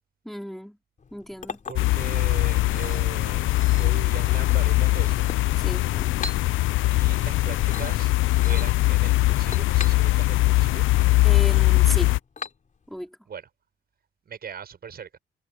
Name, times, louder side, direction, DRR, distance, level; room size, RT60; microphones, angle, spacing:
voice 1, 0.2-0.8 1.1-1.6 5.6-5.9 11.2-12.1 12.9-13.2, equal, ahead, 4.2 m, -34 dB
Chink clink, 1.0-13.0, left 4 dB, 40° left, 3.8 m, -42 dB
voice 2, 1.7-3.5 3.8-5.3 6.9-8.1 8.5-10.9 13.3-13.4 14.3-15.2, right 7 dB, 50° right, 5.7 m, -39 dB
sound 1, 1.8-12.2, left 19 dB, 80° left, 0.6 m, -21 dB
cardioid pair, 90°, 20 cm